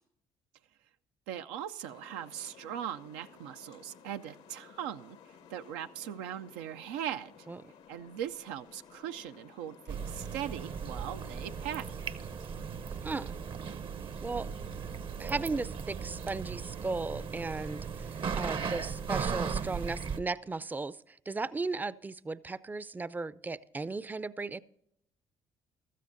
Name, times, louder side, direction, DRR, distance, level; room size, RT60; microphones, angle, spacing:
voice 1, 1.3-5.2 5.5-7.3 7.9-12.1, right 10 dB, 85° right, 9 dB, 0.4 m, -40 dB
sound 1, 1.8-11.9, left 6 dB, 75° left, 0.9 m, -56 dB
sound 2, 9.9-20.2, right 6 dB, 50° right, 0.8 m, -37 dB
voice 2, 13.0-13.4 14.2-14.5 15.2-24.6, right 3 dB, 15° right, 18 dB, 0.4 m, -36 dB
15.5 x 13.0 x 2.6 m, 0.77 s
supercardioid pair, 60°, 11 cm